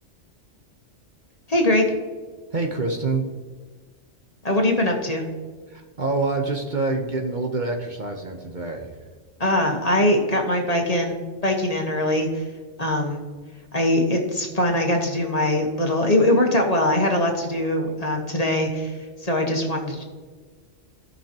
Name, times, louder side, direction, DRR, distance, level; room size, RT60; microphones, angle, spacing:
voice 1, 1.5-1.8 4.4-5.2 9.4-12.5 12.8-13.2 13.7-20.0, left 1 dB, 35° left, 1 dB, 1.3 m, -22 dB
voice 2, 2.5-3.2 5.7-9.0, right 3 dB, 45° right, 2 dB, 1.0 m, -26 dB
16.5 x 5.7 x 2.9 m, 1.5 s
omnidirectional pair, 1.2 m